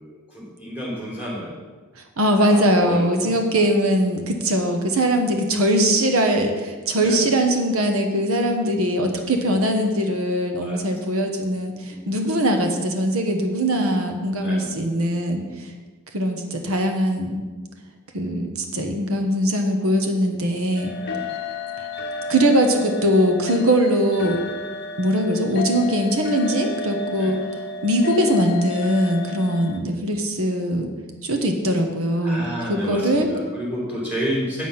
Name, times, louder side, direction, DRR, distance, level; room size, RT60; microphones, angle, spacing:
voice 1, 0.0-1.6 2.4-3.3 4.2-4.5 6.9-7.3 9.3-9.8 10.6-10.8 11.2-11.3 11.8-12.2 14.4-14.7 15.3-15.6 21.0-21.3 27.2-27.4 32.2-34.7, equal, 5° right, -6 dB, 3.6 m, -31 dB
voice 2, 2.2-15.7 16.1-17.4 18.1-20.9 21.8-21.9 22.3-24.4 25.0-27.4 27.8-30.9 31.2-33.3, equal, 75° right, 4 dB, 1.2 m, -21 dB
sound 1, 20.7-29.8, left 3 dB, 50° left, 0.7 m, -32 dB
8.3 x 7.5 x 5.8 m, 1.3 s
head